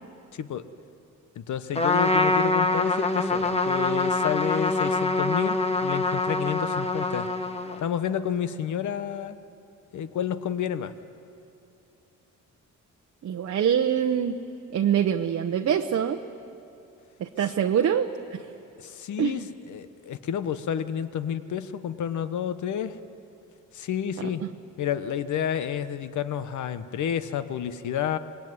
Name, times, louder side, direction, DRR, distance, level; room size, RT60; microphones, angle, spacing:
voice 1, 0.3-0.6 1.4-7.3 7.8-9.4 9.9-10.9 18.8-23.0 23.7-24.4 24.8-28.2, left 9 dB, 65° left, 12 dB, 1.1 m, -30 dB
Trumpet, 1.7-7.9, left 2 dB, 20° left, 1.2 m, -25 dB
voice 2, 13.2-14.4 14.7-16.2 17.2-18.4 19.2-19.4 24.2-24.5, right 8 dB, 50° right, 4 dB, 0.9 m, -25 dB
25.5 x 21.0 x 9.7 m, 2.7 s
cardioid pair, 145°, 32 cm